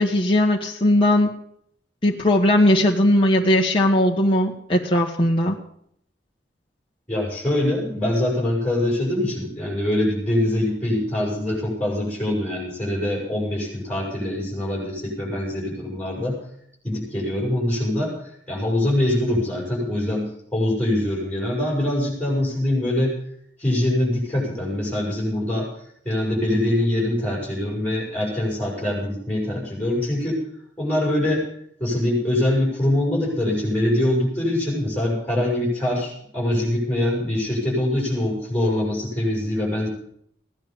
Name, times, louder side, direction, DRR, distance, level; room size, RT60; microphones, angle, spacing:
voice 1, 0.0-1.3 2.0-5.6, left 1 dB, 30° left, -2 dB, 1.4 m, -18 dB
voice 2, 7.1-16.4 16.8-18.2 18.5-23.1 23.6-25.7 26.0-30.4 30.8-31.5 31.8-39.9, left 1 dB, 10° left, -3 dB, 7.5 m, -23 dB
17.0 x 10.5 x 7.0 m, 0.68 s
head